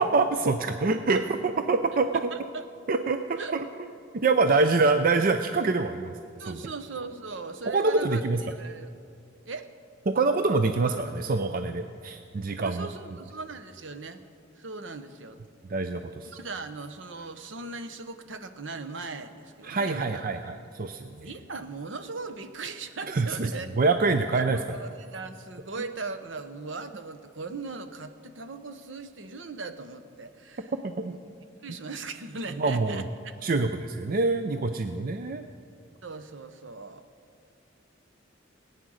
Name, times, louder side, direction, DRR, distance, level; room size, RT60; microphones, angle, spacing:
voice 1, 0.0-2.1 2.9-3.6 4.2-6.1 6.5-6.6 7.7-8.4 10.1-12.9 15.7-16.3 19.6-21.3 23.1-23.5 23.8-24.8 30.8-31.1 32.6-33.0 33.4-35.5, right 3 dB, 45° right, 8 dB, 0.5 m, -25 dB
voice 2, 2.1-2.6 3.4-3.6 4.5-4.6 6.4-8.2 8.5-8.9 9.5-9.7 12.6-14.2 14.6-15.4 16.2-20.4 21.2-23.7 24.3-30.7 31.0-31.2 31.6-33.3 36.0-37.0, right 3 dB, 70° right, 9 dB, 0.9 m, -39 dB
19.0 x 9.2 x 6.3 m, 2.3 s
head